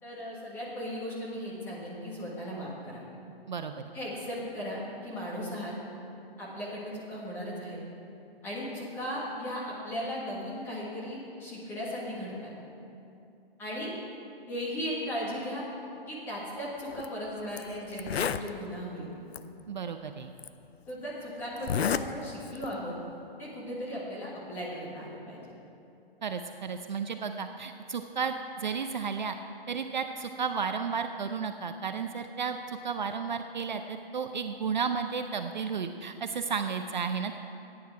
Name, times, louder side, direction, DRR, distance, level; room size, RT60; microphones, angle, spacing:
voice 1, 0.0-3.0 3.9-5.7 6.4-7.8 8.4-12.5 13.6-13.9 14.5-15.6 16.1-19.1 20.9-22.9 23.4-25.4, equal, 5° left, -6 dB, 1.6 m, -37 dB
voice 2, 3.5-3.9 19.7-20.3 26.2-29.3 29.7-37.4, right 6 dB, 50° right, 7 dB, 0.6 m, -33 dB
Zipper (clothing), 16.9-17.1 17.6-17.7 17.9-18.5 19.3-19.4 20.4-20.5 21.6-22.1 22.4-22.7, left 7 dB, 90° left, 0.7 m, -30 dB
16.0 x 9.6 x 4.7 m, 2.7 s
hypercardioid pair, 170°, 30 cm